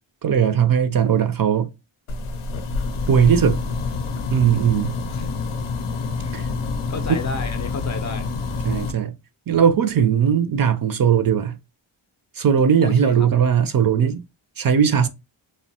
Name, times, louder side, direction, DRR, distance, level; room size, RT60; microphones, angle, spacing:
voice 1, 0.2-1.7 3.1-3.6 4.3-4.9 6.3-6.4 8.6-9.2 9.5-11.6 12.4-14.2 14.6-15.1, right 8 dB, 45° right, 0.4 m, -18 dB
sound 1, 2.1-8.9, left 4 dB, 85° left, 0.6 m, -27 dB
voice 2, 6.9-8.3 12.8-13.3, left 4 dB, 40° left, 0.4 m, -31 dB
2.8 x 2.1 x 2.7 m
cardioid pair, 60°, 49 cm